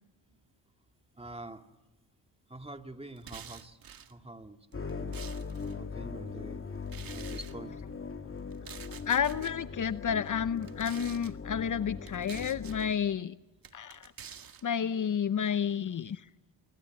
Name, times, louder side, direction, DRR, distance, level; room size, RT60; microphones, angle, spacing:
voice 1, 1.2-1.6 2.5-3.8 4.1-5.3 5.6-6.6 7.1-7.8, right 2 dB, 15° right, 6 dB, 2.2 m, -46 dB
sound 1, 3.2-4.1 4.7-5.7 6.9-7.5 8.5-9.5 10.6-11.3 12.1-12.8 13.6-14.6, right 8 dB, 55° right, 1.8 m, -48 dB
sound 2, 4.7-12.9, left 5 dB, 30° left, 2.4 m, -40 dB
voice 2, 9.1-13.3 13.7-14.3 14.6-16.2, left 8 dB, 45° left, 14 dB, 0.9 m, -31 dB
26.0 x 23.5 x 9.1 m, 1.1 s
cardioid pair, 80°, 42 cm